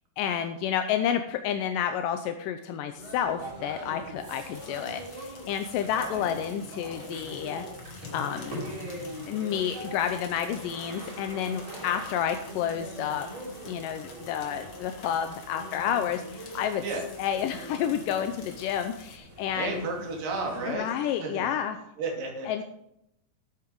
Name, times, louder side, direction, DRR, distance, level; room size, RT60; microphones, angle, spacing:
voice 1, 0.2-7.7 8.1-8.6 9.3-13.3 13.7-16.8 17.2-19.8 20.7-21.8 22.5-22.6, left 9 dB, 80° left, 7 dB, 2.0 m, -30 dB
sound 1, 3.0-20.7, right 1 dB, 35° right, 3.2 m, -42 dB
sound 2, 4.5-19.2, left 4 dB, 45° left, 2.2 m, -50 dB
voice 2, 6.0-6.4 16.8-17.1 19.5-21.5 22.0-22.6, right 3 dB, 60° right, 1 dB, 4.0 m, -33 dB
13.0 x 8.7 x 4.7 m, 0.78 s
omnidirectional pair, 4.6 m